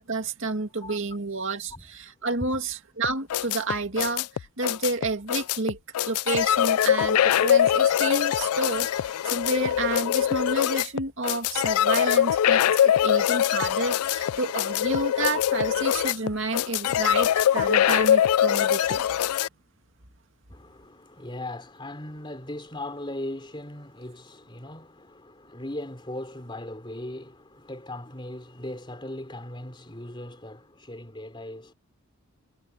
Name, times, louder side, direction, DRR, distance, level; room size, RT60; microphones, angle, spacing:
voice 1, 0.1-5.8 6.1-19.0, right 3 dB, 60° right, 2.4 m, -30 dB
sound 1, 3.0-19.5, left 10 dB, 90° left, 0.3 m, -23 dB
voice 2, 20.5-31.7, left 1 dB, 20° left, 3.7 m, -38 dB
head